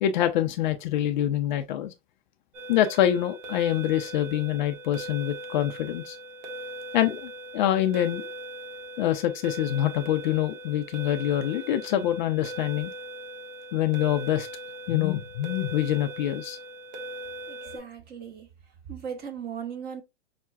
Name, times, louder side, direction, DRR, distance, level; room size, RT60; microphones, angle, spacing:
voice 1, 0.0-1.9 2.7-6.2 6.9-8.3 9.0-12.9 13.7-14.5 14.9-16.6, left 12 dB, 40° left, 0.5 m, -25 dB
sound 1, 2.5-17.8, right 1 dB, 40° right, 1.3 m, -40 dB
voice 2, 17.5-18.5 18.9-20.0, right 7 dB, 25° right, 0.9 m, -37 dB
5.6 x 2.2 x 2.3 m
hypercardioid pair, 125°, 35 cm